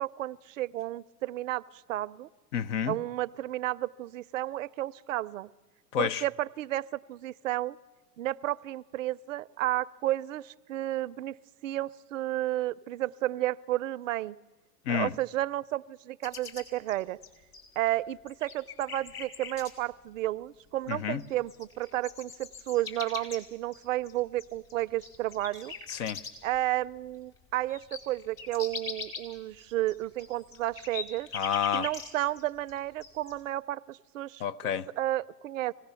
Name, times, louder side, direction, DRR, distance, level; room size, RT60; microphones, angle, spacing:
voice 1, 0.0-2.3 2.9-5.5 6.0-7.8 8.2-11.4 11.6-14.4 14.9-17.2 17.8-25.7 26.4-31.3 31.7-35.7, right 15 dB, 50° right, 0.6 m, -32 dB
voice 2, 2.5-3.0 5.9-6.2 14.9-15.1 20.9-21.2 25.9-26.2 31.3-31.9 34.4-34.9, left 9 dB, 45° left, 0.8 m, -29 dB
sound 1, 16.2-17.9 18.3-19.7 20.9-21.0 21.2-26.6 27.0-27.1 27.4-32.4 32.7-33.3, left 6 dB, 30° left, 4.7 m, -41 dB
25.0 x 17.5 x 6.9 m
hypercardioid pair, 120°, 49 cm